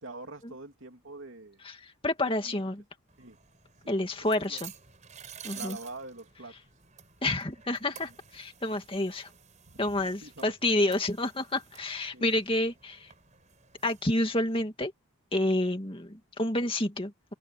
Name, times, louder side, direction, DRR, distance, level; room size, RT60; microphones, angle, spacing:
voice 1, 0.0-1.6 2.4-2.6 3.2-3.4 3.8-4.6 5.5-6.5 9.7-10.5 12.1-12.3, right 2 dB, 60° right, 3.2 m, -45 dB
voice 2, 2.0-2.8 3.9-4.7 5.4-5.8 7.2-9.3 9.8-13.1 13.8-14.9 15.3-17.3, left 1 dB, 25° left, 2.3 m, -29 dB
sound 1, 3.1-14.6, right 8 dB, 35° right, 5.2 m, -51 dB
head